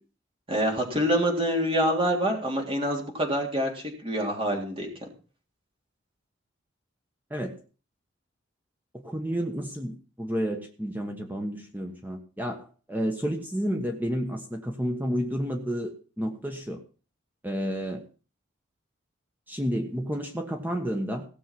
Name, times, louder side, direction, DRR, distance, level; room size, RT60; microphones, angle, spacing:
voice 1, 0.5-4.9, equal, 30° right, 1 dB, 3.5 m, -26 dB
voice 2, 9.0-16.8 17.4-18.0 19.5-21.3, equal, 10° right, 3 dB, 1.3 m, -31 dB
17.5 x 6.9 x 5.9 m, 0.37 s
head